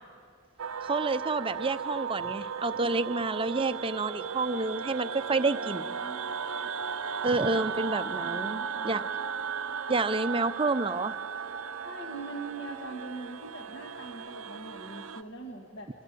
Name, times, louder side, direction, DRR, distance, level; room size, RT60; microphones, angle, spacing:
sound 1, 0.6-15.2, right 6 dB, 75° right, 0.7 m, -36 dB
voice 1, 0.8-5.8 7.2-9.1 9.9-11.1, right 3 dB, 25° right, 12 dB, 0.6 m, -29 dB
voice 2, 5.5-6.7 8.2-9.1 11.8-15.9, right 2 dB, 55° left, 1 dB, 1.7 m, -43 dB
26.5 x 22.5 x 8.4 m, 2.5 s
head